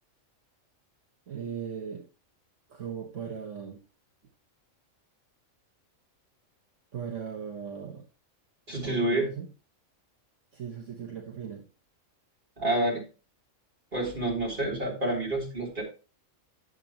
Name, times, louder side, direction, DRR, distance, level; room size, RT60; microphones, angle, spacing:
voice 1, 1.3-2.1 2.7-3.8 6.9-8.0 8.8-9.5 10.5-11.7, right 7 dB, 70° right, 0 dB, 1.7 m, -38 dB
voice 2, 8.7-9.3 12.6-13.0 13.9-15.8, right 1 dB, 40° right, -3 dB, 3.7 m, -28 dB
11.0 x 7.6 x 3.0 m, 0.33 s
omnidirectional pair, 1.3 m